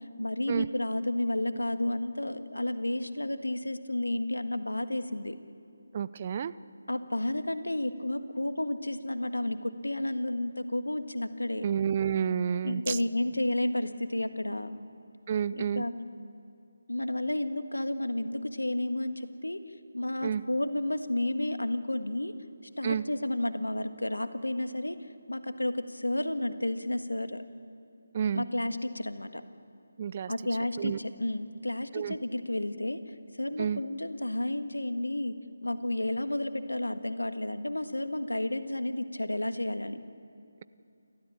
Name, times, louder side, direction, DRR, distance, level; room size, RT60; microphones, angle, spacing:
voice 1, 0.0-5.4 6.9-11.6 12.6-14.8 15.6-16.0 16.9-19.6 19.9-22.3 22.8-25.0 25.3-27.4 28.3-29.4 30.3-33.0 33.4-35.3 35.6-40.0, left 1 dB, 90° left, 9 dB, 1.6 m, -31 dB
voice 2, 5.9-6.5 11.6-13.0 15.3-15.8 20.2-20.4 22.8-23.0 28.1-28.5 30.0-30.3 30.8-31.0 31.9-32.2 33.6-33.8, right 8 dB, 30° right, 16 dB, 0.5 m, -30 dB
29.0 x 13.5 x 8.8 m, 2.6 s
figure-of-eight pair, 160°, 0 cm